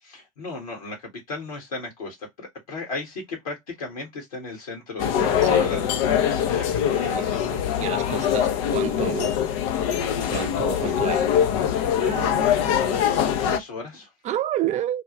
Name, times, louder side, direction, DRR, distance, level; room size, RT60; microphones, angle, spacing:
voice 1, 0.0-5.9 6.3-7.5 10.7-10.9 12.0-14.1, left 2 dB, 80° left, 1.5 m, -36 dB
sound 1, 5.0-13.6, left 9 dB, 60° left, 0.6 m, -23 dB
voice 2, 5.2-5.8 7.1-9.4 10.3-11.3 14.2-15.0, right 12 dB, 40° right, 0.6 m, -30 dB
3.5 x 2.3 x 3.0 m
figure-of-eight pair, 70°, 18 cm